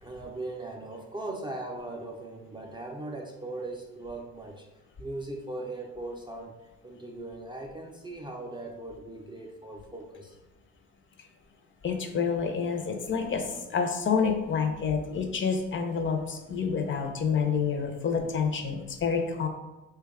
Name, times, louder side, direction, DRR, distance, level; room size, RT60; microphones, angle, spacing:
voice 1, 0.0-4.7 5.0-6.5 6.8-10.4 16.6-16.7, right 2 dB, 15° right, 0 dB, 0.3 m, -39 dB
voice 2, 11.8-19.5, left 6 dB, 40° left, 5 dB, 0.5 m, -28 dB
3.1 x 2.2 x 3.4 m, 1.1 s
cardioid pair, 90°, 30 cm